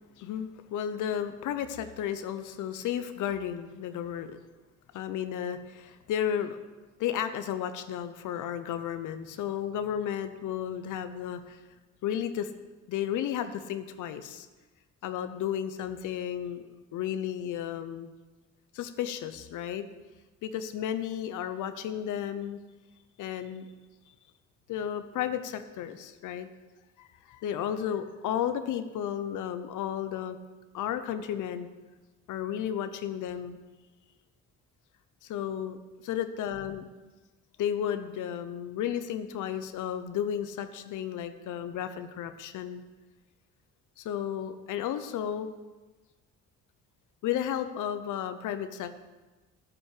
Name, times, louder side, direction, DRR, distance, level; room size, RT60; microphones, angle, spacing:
voice 1, 0.2-4.4 4.9-6.6 7.0-11.6 12.0-12.5 12.9-14.5 15.0-18.1 18.7-19.8 20.4-22.6 23.2-23.7 24.7-26.5 27.0-30.4 30.7-31.7 32.3-33.6 35.2-35.8 36.0-36.9 37.6-42.8 44.0-45.5 47.2-48.9, left 9 dB, 80° left, 10 dB, 0.8 m, -33 dB
9.3 x 6.2 x 8.3 m, 1.2 s
cardioid pair, 90°, 30 cm